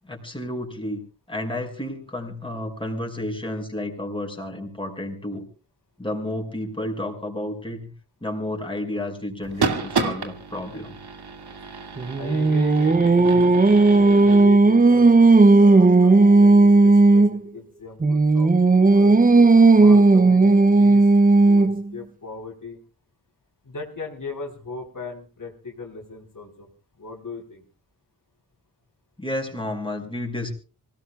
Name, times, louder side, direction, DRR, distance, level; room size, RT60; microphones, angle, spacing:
voice 1, 0.0-1.0 1.3-5.5 6.0-7.9 8.2-11.0 29.2-30.5, left 1 dB, 15° left, 2 dB, 5.8 m, -31 dB
sound 1, 9.4-14.5, right 4 dB, 85° right, 2.4 m, -30 dB
Singing, 12.0-17.4 18.0-21.9, right 3 dB, 20° right, 0.6 m, -15 dB
voice 2, 12.2-15.1 15.5-19.2 19.8-21.1 21.4-22.8 23.6-26.7 27.0-27.6, left 3 dB, 55° left, 1 dB, 3.9 m, -38 dB
25.5 x 18.0 x 2.4 m, 0.36 s
wide cardioid pair, 85°, 38 cm